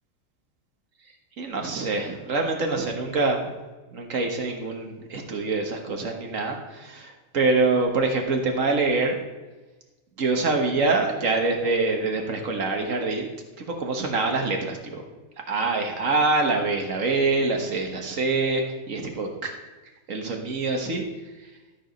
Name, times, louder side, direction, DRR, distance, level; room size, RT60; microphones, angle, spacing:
voice 1, 1.4-3.4 3.9-9.2 10.2-13.3 13.6-15.0 15.5-19.5 20.1-21.1, right 3 dB, 75° right, 3 dB, 1.7 m, -25 dB
13.0 x 5.0 x 6.3 m, 1.2 s
omnidirectional pair, 1.4 m